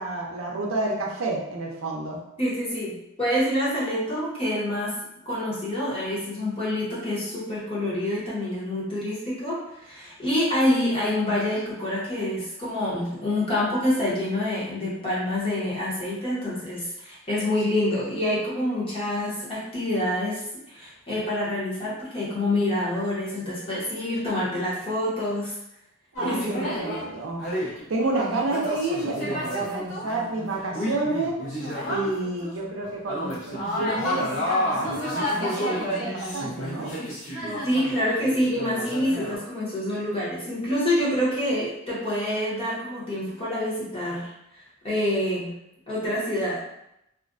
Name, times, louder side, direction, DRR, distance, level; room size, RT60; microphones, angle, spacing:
voice 1, 0.0-2.2 26.2-31.4 31.9-36.9, right 2 dB, 70° right, -1 dB, 0.5 m, -30 dB
voice 2, 2.4-4.9 5.3-25.5 26.2-26.6 37.6-45.5 45.9-46.6, left 1 dB, 25° left, -8 dB, 0.8 m, -27 dB
sound 1, 26.1-27.0 27.4-32.5 32.8-39.4, equal, 65° left, 0.8 m, -30 dB
2.4 x 2.1 x 2.4 m, 0.82 s
head